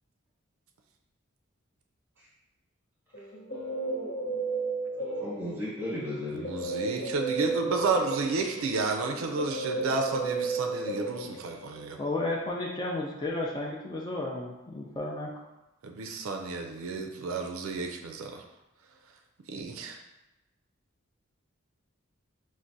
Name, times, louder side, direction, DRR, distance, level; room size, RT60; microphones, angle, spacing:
Guitar, 3.1-5.7 6.4-11.8, right 3 dB, 75° left, 0.8 m, -33 dB
voice 1, 5.2-6.6, left 1 dB, 10° right, -6 dB, 1.0 m, -35 dB
voice 2, 6.3-12.0 15.8-18.4 19.5-20.0, right 4 dB, 85° right, 3 dB, 0.4 m, -31 dB
voice 3, 12.0-15.3, left 2 dB, 20° left, -2 dB, 0.3 m, -33 dB
4.5 x 2.1 x 2.6 m, 0.97 s
head